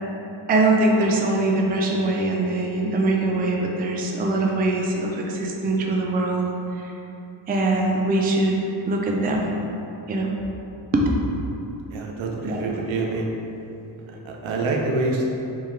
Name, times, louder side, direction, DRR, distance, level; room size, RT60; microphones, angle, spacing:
voice 1, 0.5-6.5 7.5-8.5 8.9-9.5 10.1-10.3 10.9-11.1 12.4-12.6, right 2 dB, 20° right, 0 dB, 0.4 m, -22 dB
sound 1, 0.9-5.9, left 3 dB, 35° left, 0.8 m, -34 dB
voice 2, 11.9-13.3 14.2-15.3, right 2 dB, 80° right, -1 dB, 0.7 m, -26 dB
3.6 x 2.8 x 3.2 m, 2.9 s
cardioid pair, 70°, 46 cm